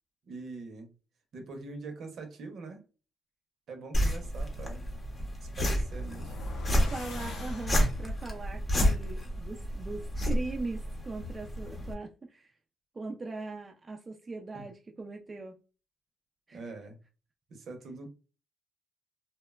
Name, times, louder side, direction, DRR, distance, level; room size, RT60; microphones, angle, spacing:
voice 1, 0.3-0.9 1.3-2.8 3.7-4.9 5.4-6.4 14.5-14.7 16.5-17.0 17.5-18.1, right 3 dB, 65° right, 0.7 m, -43 dB
sound 1, 3.9-11.9, equal, 30° left, 0.7 m, -31 dB
sound 2, 5.4-8.3, left 1 dB, 80° left, 0.6 m, -41 dB
voice 2, 6.9-12.5 12.9-15.6 16.5-16.6, right 3 dB, 30° right, 0.4 m, -40 dB
2.8 x 2.1 x 2.3 m
cardioid pair, 90°, 0 cm